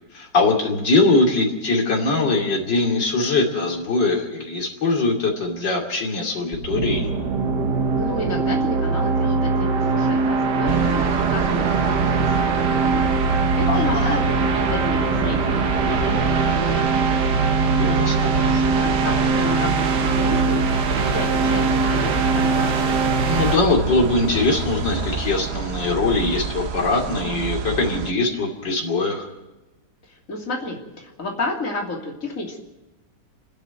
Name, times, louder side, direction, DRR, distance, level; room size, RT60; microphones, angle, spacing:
voice 1, 0.1-7.1 13.7-14.2 17.7-18.3 23.2-29.3, left 3 dB, 80° left, 0 dB, 3.4 m, -22 dB
sound 1, 6.5-23.6, right 4 dB, 70° right, 1.8 m, -22 dB
voice 2, 7.9-13.2 13.6-17.2 17.6-20.7 20.9-22.7 30.1-32.6, left 2 dB, 45° left, -1 dB, 3.4 m, -32 dB
sound 2, 10.7-28.1, right 6 dB, 50° right, 0.8 m, -27 dB
29.5 x 9.9 x 9.4 m, 1.0 s
omnidirectional pair, 1.9 m